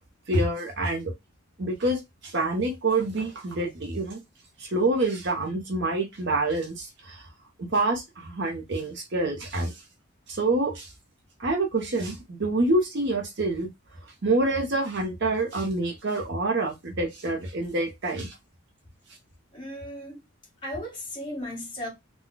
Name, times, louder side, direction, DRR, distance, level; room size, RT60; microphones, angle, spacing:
voice 1, 0.3-1.1 1.6-4.2 4.6-7.2 7.6-9.7 10.3-10.9 11.4-13.7 14.2-18.3, right 2 dB, 50° right, 0.8 m, -27 dB
voice 2, 19.5-20.2 20.6-21.9, left 1 dB, 20° left, 1.7 m, -35 dB
3.8 x 2.3 x 2.2 m
head